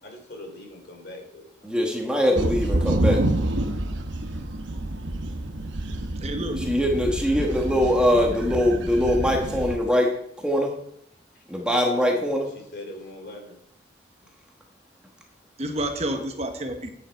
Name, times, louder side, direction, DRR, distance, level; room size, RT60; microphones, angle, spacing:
voice 1, 0.0-1.8 3.8-4.1 12.5-13.6, left 1 dB, 55° left, 2 dB, 3.0 m, -42 dB
voice 2, 1.6-3.2 6.6-10.1 10.4-10.7 11.5-12.5, equal, 5° right, 0 dB, 1.2 m, -22 dB
sound 1, 2.4-9.8, right 1 dB, 75° right, 0.9 m, -28 dB
voice 3, 6.2-6.7 7.4-7.5 15.6-16.9, right 1 dB, 35° right, 5 dB, 1.0 m, -29 dB
9.3 x 9.2 x 4.5 m, 0.71 s
head